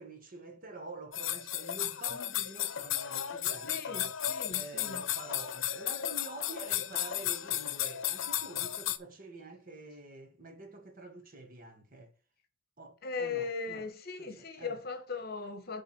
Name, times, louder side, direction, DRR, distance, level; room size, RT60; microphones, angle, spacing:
voice 1, 0.0-4.2 4.5-12.1 12.8-13.8 14.2-14.8, right 2 dB, 45° right, 1.4 m, -47 dB
sound 1, 1.1-9.0, left 11 dB, 75° left, 0.7 m, -34 dB
voice 2, 3.7-5.1 13.0-15.8, left 4 dB, 50° left, 1.2 m, -38 dB
7.5 x 3.6 x 5.8 m
head